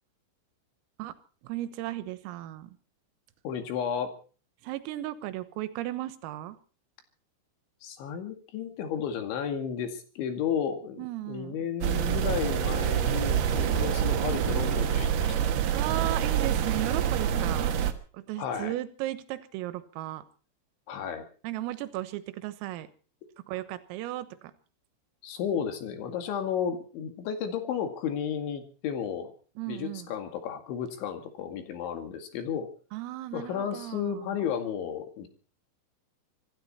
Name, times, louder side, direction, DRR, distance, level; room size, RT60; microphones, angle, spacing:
voice 1, 1.4-2.8 4.6-6.6 11.0-11.6 15.7-17.7 18.1-20.2 21.4-22.9 23.5-24.5 29.6-30.1 32.9-34.4, right 15 dB, 90° right, 14 dB, 3.9 m, -35 dB
voice 2, 3.4-4.1 7.8-15.3 18.4-18.7 20.9-21.2 25.2-29.3 29.7-32.7 33.3-35.3, left 8 dB, 70° left, 7 dB, 4.3 m, -33 dB
sound 1, 11.8-17.9, right 9 dB, 65° right, 2.8 m, -26 dB
25.5 x 12.5 x 4.3 m, 0.40 s
omnidirectional pair, 5.8 m